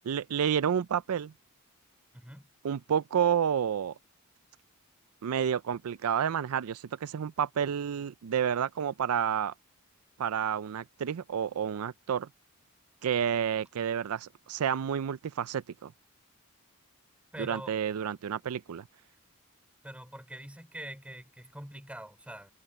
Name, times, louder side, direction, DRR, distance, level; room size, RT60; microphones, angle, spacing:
voice 1, 0.0-1.3 2.6-3.9 5.2-9.5 10.2-12.3 13.0-15.9 17.4-18.8, right 8 dB, 80° right, 0.4 m, -30 dB
voice 2, 2.1-2.5 17.3-17.8 19.8-22.5, right 1 dB, 5° right, 3.5 m, -44 dB
head